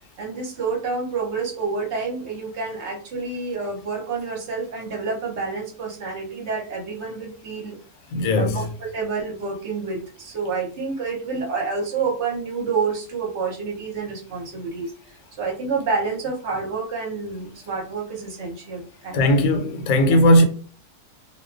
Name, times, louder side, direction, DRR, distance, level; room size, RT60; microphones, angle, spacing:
voice 1, 0.2-7.8 8.3-19.2 20.1-20.2, right 4 dB, 55° right, 0.9 m, -28 dB
voice 2, 8.1-8.6 19.1-20.4, equal, 80° left, 1.0 m, -17 dB
2.4 x 2.3 x 2.4 m
omnidirectional pair, 1.6 m